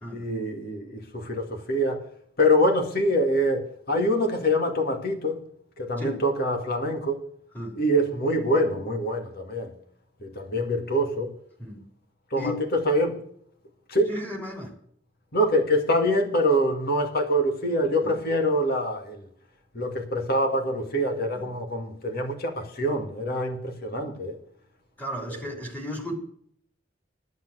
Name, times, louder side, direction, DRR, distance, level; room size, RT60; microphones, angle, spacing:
voice 1, 0.1-2.0 2.4-5.4 5.8-7.2 7.7-9.7 10.2-11.3 12.3-13.2 13.9-14.1 15.3-19.3 19.7-24.4 25.3-25.6, equal, 55° left, 2.1 m, -25 dB
voice 2, 14.1-14.7 18.0-18.2 21.3-21.4 25.0-26.1, left 1 dB, 10° left, 3.3 m, -34 dB
10.5 x 8.3 x 8.0 m
head